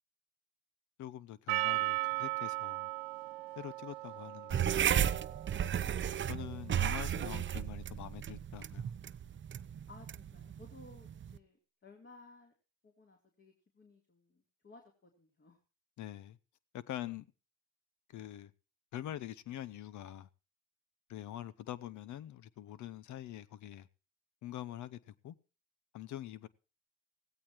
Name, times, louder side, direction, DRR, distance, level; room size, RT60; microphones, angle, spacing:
voice 1, 1.0-2.9 3.6-4.7 6.3-8.9 16.0-16.4 16.7-17.3 18.1-18.5 18.9-20.3 21.1-23.9 24.4-25.3 25.9-26.5, left 12 dB, 60° left, 0.9 m, -44 dB
Percussion, 1.5-6.0, right 22 dB, 85° right, 0.9 m, -37 dB
sound 1, 4.5-11.4, right 9 dB, 35° right, 0.7 m, -34 dB
voice 2, 5.5-6.7 9.9-12.5 12.8-15.6, left 3 dB, 35° left, 3.4 m, -59 dB
16.5 x 16.5 x 3.1 m
supercardioid pair, 65°, 33 cm